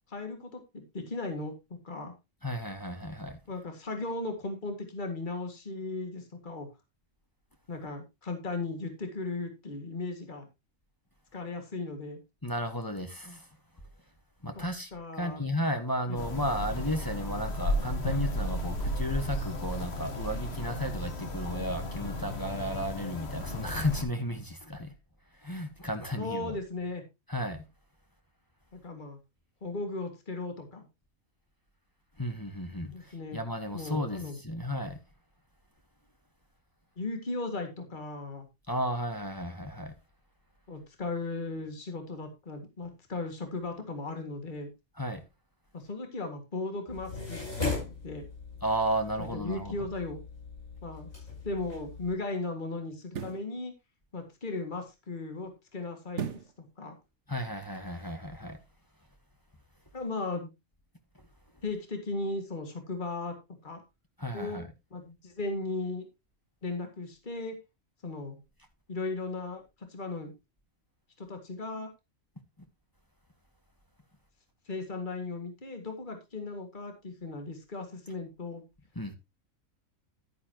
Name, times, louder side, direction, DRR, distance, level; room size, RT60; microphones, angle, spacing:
voice 1, 0.1-1.5 1.8-2.1 3.5-6.7 7.7-10.5 11.3-12.2 14.6-14.7 14.9-15.4 16.1-16.2 23.5-23.6 26.2-27.0 28.7-29.2 29.6-30.8 32.9-33.4 33.7-34.4 37.0-38.5 40.7-44.7 45.7-47.4 47.7-48.3 49.2-50.2 50.8-51.1 51.4-53.7 54.1-56.3 56.8-56.9 59.9-60.5 61.6-63.3 63.6-63.8 64.3-64.6 64.9-66.1 66.6-67.6 68.0-68.4 68.9-69.6 69.9-70.3 71.2-71.9 74.7-78.6, left 3 dB, 35° left, 2.2 m, -36 dB
voice 2, 2.4-3.4 12.4-13.5 14.4-14.9 15.2-24.9 25.4-26.6 27.3-27.7 32.2-35.0 38.7-39.9 45.0-45.2 48.6-49.9 57.3-58.6 64.2-64.7 78.9-79.1, equal, 15° left, 1.2 m, -33 dB
sound 1, 16.1-24.0, left 1 dB, 50° left, 1.7 m, -34 dB
sound 2, 46.9-52.2, left 4 dB, 80° left, 6.5 m, -39 dB
sound 3, 51.2-51.3 53.0-53.5 56.1-56.6 57.1-57.2, right 7 dB, 60° right, 1.3 m, -36 dB
11.5 x 9.6 x 2.9 m
omnidirectional pair, 1.4 m